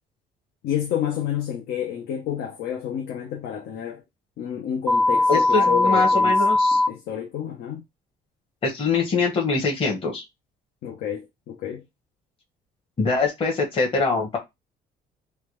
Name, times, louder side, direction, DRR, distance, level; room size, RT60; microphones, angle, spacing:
voice 1, 0.6-4.0 4.4-6.4 6.9-7.8 10.8-11.8, left 10 dB, 75° left, 0.7 m, -29 dB
sound 1, 4.9-6.9, left 2 dB, 5° left, 0.5 m, -19 dB
voice 2, 5.3-6.8 8.6-10.2 13.0-14.4, left 4 dB, 35° left, 1.1 m, -23 dB
3.3 x 2.2 x 3.0 m
cardioid pair, 110°, 17 cm